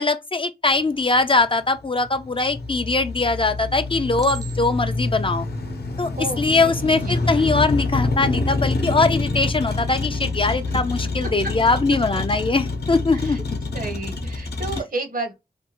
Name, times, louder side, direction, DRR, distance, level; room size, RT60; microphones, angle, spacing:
voice 1, 0.0-5.5 6.0-6.1 6.4-13.4, left 3 dB, 30° left, 0.3 m, -21 dB
Motor vehicle (road), 0.7-14.8, left 3 dB, 85° left, 0.8 m, -27 dB
Chink clink, 4.2-5.0 5.7-6.0, right 8 dB, 25° right, 0.5 m, -39 dB
voice 2, 6.1-7.7 10.7-10.8 12.1-12.2 13.1-13.4 13.7-15.3, right 2 dB, 60° right, 0.7 m, -32 dB
2.6 x 2.6 x 2.8 m
wide cardioid pair, 90°, 17 cm